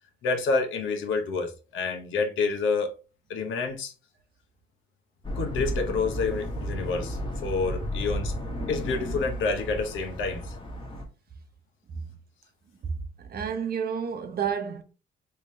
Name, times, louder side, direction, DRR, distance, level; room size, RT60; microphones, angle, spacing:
voice 1, 0.2-2.9 3.3-3.9 5.4-8.3 8.7-10.5, left 4 dB, 80° left, 0.9 m, -28 dB
sound 1, 5.2-11.0, equal, 25° left, 1.2 m, -33 dB
voice 2, 13.2-14.8, right 7 dB, 50° right, 0.8 m, -30 dB
3.3 x 2.9 x 3.1 m
cardioid pair, 90°, 20 cm